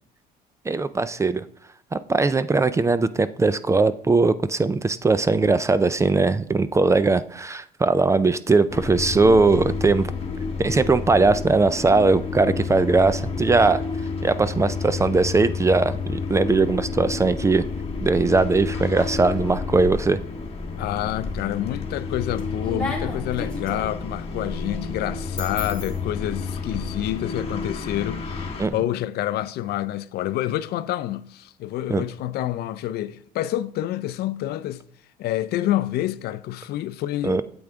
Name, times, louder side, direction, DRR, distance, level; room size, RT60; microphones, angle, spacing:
voice 1, 0.7-1.4 1.9-10.1 10.6-13.8 14.2-17.6 18.0-20.2 28.6-28.7 31.9-32.0 37.2-37.4, right 3 dB, 15° right, 0.4 m, -20 dB
sound 1, 8.7-28.7, left 4 dB, 35° left, 1.5 m, -30 dB
voice 2, 20.8-34.8 35.2-37.4, left 13 dB, 70° left, 0.5 m, -28 dB
sound 2, 21.2-21.7 22.1-26.8, left 2 dB, 5° left, 2.7 m, -35 dB
8.5 x 7.8 x 3.5 m
cardioid pair, 110°, 17 cm